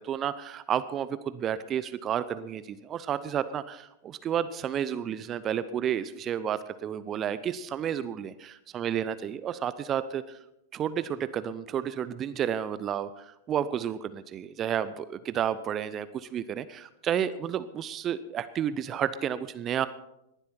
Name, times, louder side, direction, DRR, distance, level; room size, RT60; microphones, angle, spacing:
voice 1, 0.0-8.3 8.7-10.4 10.7-19.9, right 9 dB, 30° right, 14 dB, 0.7 m, -31 dB
19.0 x 11.5 x 4.4 m, 0.86 s
figure-of-eight pair, 95°, 0 cm